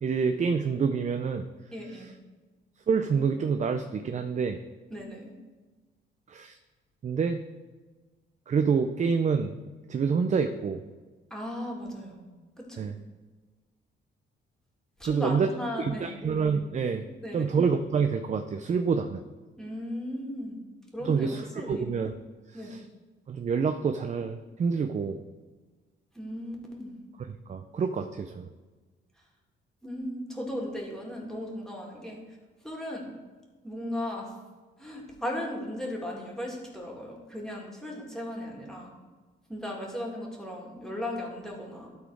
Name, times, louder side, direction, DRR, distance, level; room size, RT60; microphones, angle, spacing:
voice 1, 0.0-1.5 1.9-2.0 2.9-4.6 6.3-6.6 7.0-7.4 8.5-9.6 9.9-10.8 12.8-12.9 15.0-15.5 15.8-17.1 17.3-19.2 21.0-22.1 22.5-22.8 23.3-25.2 27.5-28.5, right 5 dB, 35° right, 7 dB, 0.5 m, -27 dB
voice 2, 1.7-2.1 4.9-5.3 11.3-12.2 12.6-12.9 15.0-16.2 17.2-17.5 19.6-20.6 20.9-21.9 22.5-22.7 26.1-27.0 29.8-32.2 32.6-33.1 33.6-34.3 34.8-38.9 39.5-41.9, left 1 dB, 5° left, -2 dB, 2.3 m, -36 dB
12.0 x 4.2 x 4.8 m, 1.3 s
cardioid pair, 90°, 20 cm